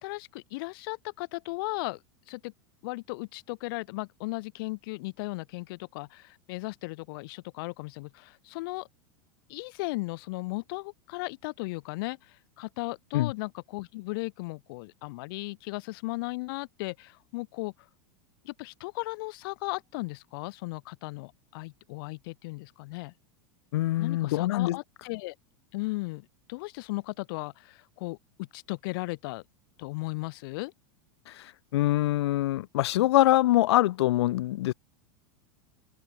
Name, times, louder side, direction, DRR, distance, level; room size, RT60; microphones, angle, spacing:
voice 1, 0.0-2.0 2.3-2.5 2.8-8.9 9.5-17.7 18.4-23.1 24.0-25.3 25.7-29.4 29.8-30.7, left 24 dB, 60° left, 3.3 m, -36 dB
voice 2, 23.7-24.8 31.3-31.5 31.7-34.7, left 15 dB, 85° left, 0.4 m, -24 dB
open air
supercardioid pair, 145°, 13 cm